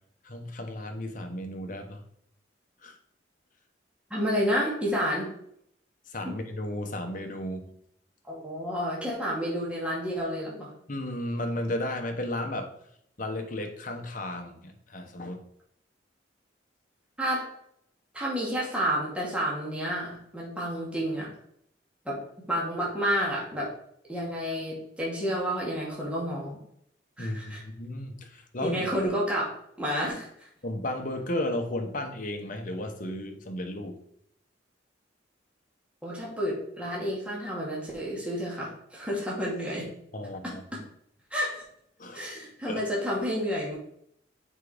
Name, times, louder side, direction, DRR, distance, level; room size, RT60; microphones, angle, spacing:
voice 1, 0.2-2.0 2.8-2.9 6.1-7.8 10.9-12.7 13.2-15.4 27.2-28.9 30.6-34.0 40.1-40.6 42.0-42.3 42.7-42.8, left 1 dB, 45° left, 4 dB, 1.2 m, -34 dB
voice 2, 4.1-5.3 8.2-10.7 17.2-17.4 18.1-21.3 22.0-22.2 22.5-23.7 24.1-26.6 27.2-27.6 28.6-29.5 29.8-30.5 36.0-39.9 40.4-40.5 41.3-41.6 42.1-43.8, equal, 5° right, -5 dB, 2.4 m, -30 dB
7.5 x 4.9 x 5.1 m, 0.69 s
head